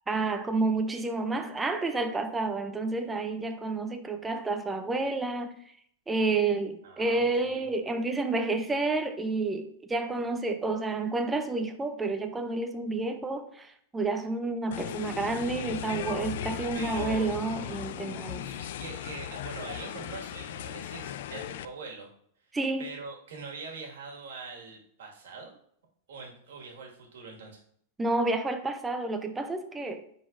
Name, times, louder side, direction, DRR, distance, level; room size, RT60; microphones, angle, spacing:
voice 1, 0.1-5.6 6.1-18.5 22.5-22.9 28.0-30.0, right 3 dB, 10° right, 0.4 m, -30 dB
voice 2, 6.8-7.7 16.7-17.3 18.4-22.1 22.8-25.5 26.1-27.6, right 4 dB, 85° right, 1.7 m, -43 dB
sound 1, 14.7-21.7, left 10 dB, 60° left, 0.3 m, -37 dB
9.8 x 3.9 x 2.5 m
supercardioid pair, 165°, 0 cm